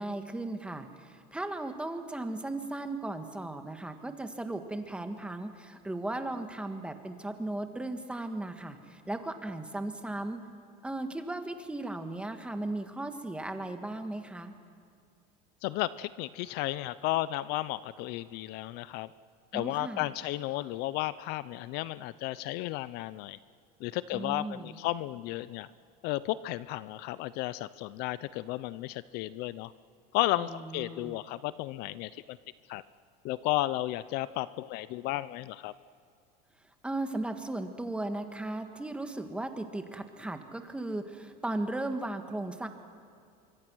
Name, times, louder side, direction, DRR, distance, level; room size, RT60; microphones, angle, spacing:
voice 1, 0.0-10.4 10.8-14.5 19.5-20.1 24.1-24.7 30.4-31.2 36.8-42.7, right 2 dB, 5° right, 7 dB, 1.5 m, -36 dB
voice 2, 15.6-19.1 19.5-23.4 23.8-25.7 26.0-29.7 30.1-32.4 32.7-32.8 33.2-35.7, left 16 dB, 55° left, 17 dB, 0.6 m, -33 dB
25.0 x 24.5 x 6.2 m, 2.5 s
cardioid pair, 150°, 19 cm